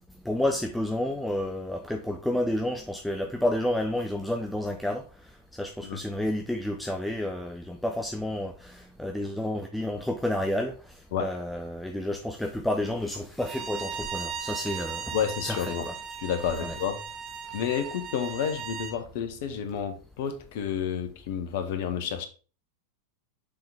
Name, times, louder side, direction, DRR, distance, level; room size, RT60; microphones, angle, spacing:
voice 1, 0.2-15.2 15.4-15.9 16.6-16.7, left 1 dB, 5° left, 0.6 m, -30 dB
Bowed string instrument, 13.4-19.0, right 6 dB, 30° right, 0.8 m, -37 dB
voice 2, 15.1-15.9 16.2-17.0 17.5-22.2, left 8 dB, 50° left, 1.0 m, -30 dB
6.9 x 3.9 x 3.5 m
figure-of-eight pair, 90°, 0 cm